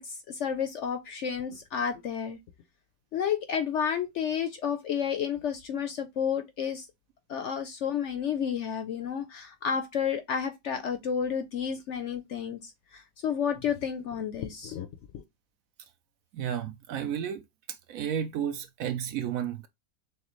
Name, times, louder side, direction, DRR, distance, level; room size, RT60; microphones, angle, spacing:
voice 1, 0.0-2.4 3.1-6.9 7.3-14.9 15.1-15.2, left 7 dB, 65° left, 0.7 m, -31 dB
voice 2, 16.3-17.4 17.9-19.7, right 9 dB, 70° right, 0.9 m, -32 dB
6.4 x 2.2 x 3.0 m
omnidirectional pair, 1.6 m